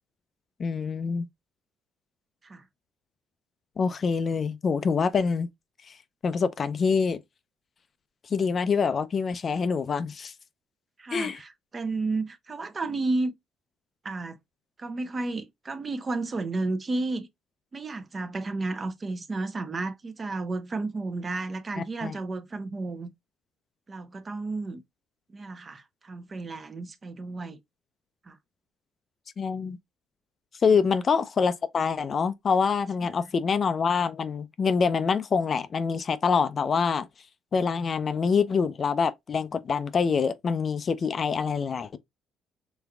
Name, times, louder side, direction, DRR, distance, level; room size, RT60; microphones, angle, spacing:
voice 1, 0.6-1.3 3.8-5.5 6.2-7.2 8.3-10.3 11.1-11.4 21.8-22.1 29.4-29.8 30.6-37.1 37.5-42.0, left 5 dB, 40° left, 0.5 m, -25 dB
voice 2, 11.0-13.3 14.0-14.4 14.8-17.3 17.7-23.1 23.9-24.8 25.3-27.6 28.3-28.4 30.7-30.8, right 3 dB, 30° right, 0.8 m, -32 dB
5.2 x 3.5 x 2.3 m
cardioid pair, 105°, 0 cm